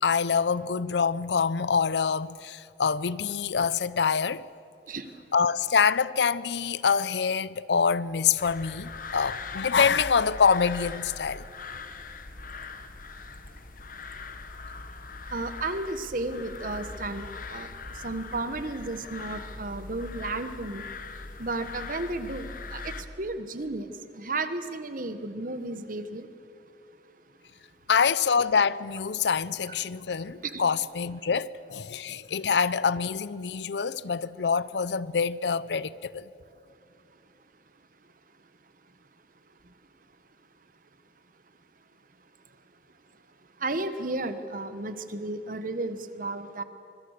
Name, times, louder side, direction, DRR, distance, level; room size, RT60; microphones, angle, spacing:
voice 1, 0.0-4.4 5.3-11.4 27.9-36.3, left 6 dB, 75° left, 0.6 m, -25 dB
sound 1, 8.4-23.0, left 4 dB, 50° left, 1.2 m, -41 dB
voice 2, 15.3-17.7 17.9-20.9 21.4-26.3 29.7-29.8 30.4-30.6 43.6-46.6, right 2 dB, 50° right, 1.3 m, -33 dB
25.0 x 22.5 x 6.7 m
head